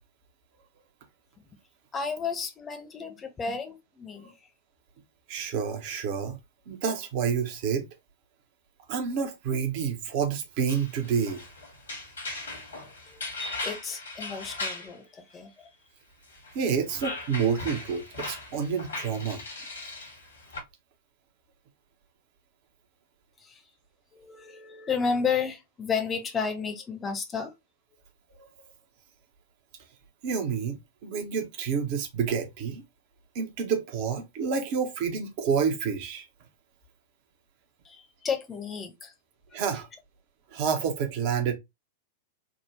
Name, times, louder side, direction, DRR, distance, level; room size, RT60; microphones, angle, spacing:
voice 1, 1.9-4.5 13.1-15.7 23.4-23.6 24.1-27.5 37.8-39.1, left 5 dB, 20° left, 0.8 m, -32 dB
voice 2, 5.3-6.4 6.7-7.8 8.9-11.4 16.5-19.4 30.2-32.8 33.3-36.3 39.5-39.9 40.5-41.5, right 6 dB, 45° right, 0.9 m, -29 dB
sound 1, 10.7-14.9 16.3-20.6, left 2 dB, 70° left, 1.5 m, -38 dB
3.7 x 2.3 x 3.0 m
figure-of-eight pair, 95°, 0 cm